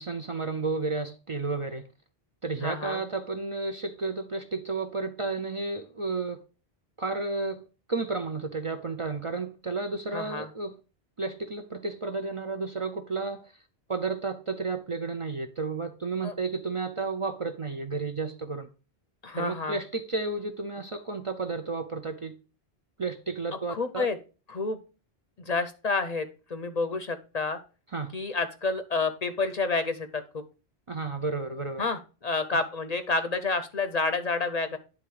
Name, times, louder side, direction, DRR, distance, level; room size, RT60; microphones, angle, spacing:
voice 1, 0.0-1.9 2.4-6.4 7.0-10.8 11.2-13.5 13.9-18.7 19.4-22.4 23.0-24.1 27.9-28.1 30.9-31.8, right 3 dB, 40° right, 0.5 m, -32 dB
voice 2, 2.6-3.0 10.1-10.5 16.2-16.3 19.2-19.8 23.7-24.2 24.5-24.8 25.5-27.6 28.1-30.4 31.8-34.8, left 3 dB, 45° left, 0.6 m, -29 dB
9.6 x 3.7 x 4.7 m
omnidirectional pair, 1.1 m